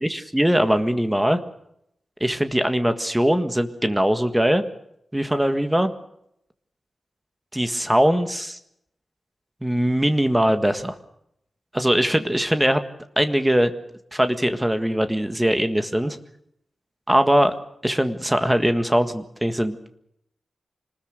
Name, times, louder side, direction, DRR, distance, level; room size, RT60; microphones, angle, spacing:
voice 1, 0.0-1.4 2.2-4.6 5.1-5.9 7.5-8.6 9.6-10.9 11.7-12.8 13.2-13.7 14.1-16.2 17.1-17.5 17.8-19.8, equal, 5° right, 8 dB, 1.6 m, -21 dB
26.0 x 20.0 x 6.6 m, 0.76 s
wide cardioid pair, 165°, 0 cm